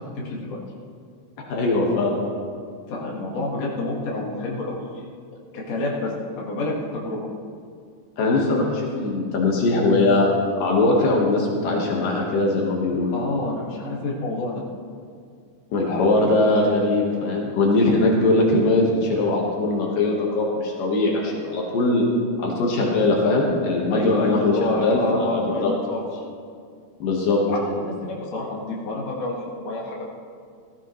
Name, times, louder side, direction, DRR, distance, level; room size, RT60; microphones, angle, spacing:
voice 1, 0.2-0.6 2.9-5.1 5.3-7.3 13.1-14.6 23.9-26.0 27.5-30.1, left 2 dB, 55° left, -3 dB, 3.0 m, -28 dB
voice 2, 1.5-2.2 8.2-10.3 10.6-13.1 15.7-22.1 22.4-25.7 27.0-27.4, left 2 dB, 75° left, -2 dB, 3.1 m, -21 dB
17.0 x 14.5 x 3.2 m, 2.2 s
omnidirectional pair, 3.8 m